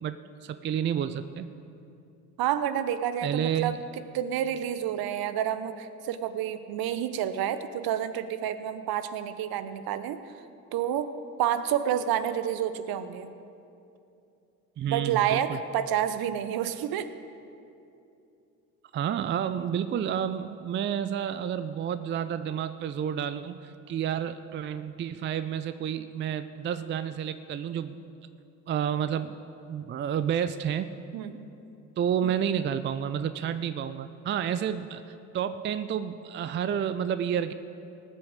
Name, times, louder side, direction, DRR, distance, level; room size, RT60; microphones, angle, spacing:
voice 1, 0.0-1.5 3.2-3.8 14.8-15.6 18.9-28.0 28.7-29.4 29.7-30.9 32.0-37.5, right 9 dB, 25° right, 12 dB, 0.4 m, -30 dB
voice 2, 2.4-3.8 4.1-10.2 10.7-11.1 11.4-13.3 14.9-17.1 31.1-31.5, right 10 dB, 50° right, 12 dB, 0.8 m, -29 dB
18.5 x 6.3 x 6.6 m, 2.7 s
hypercardioid pair, 55°, 45 cm